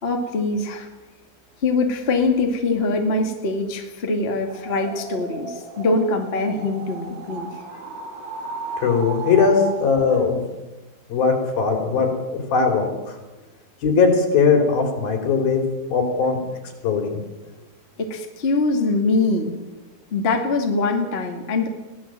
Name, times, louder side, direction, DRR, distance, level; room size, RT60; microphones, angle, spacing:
voice 1, 0.0-0.9 1.6-7.7 11.9-12.0 18.0-19.5 20.1-21.7, left 3 dB, 20° left, 3 dB, 1.9 m, -23 dB
sound 1, 4.4-10.2, right 4 dB, 70° right, 4.7 m, -35 dB
voice 2, 8.8-10.4 11.1-13.1 13.8-15.6 15.9-16.4 16.8-17.2, left 5 dB, 70° left, 4 dB, 5.2 m, -19 dB
23.0 x 17.0 x 7.7 m, 1.1 s
omnidirectional pair, 4.4 m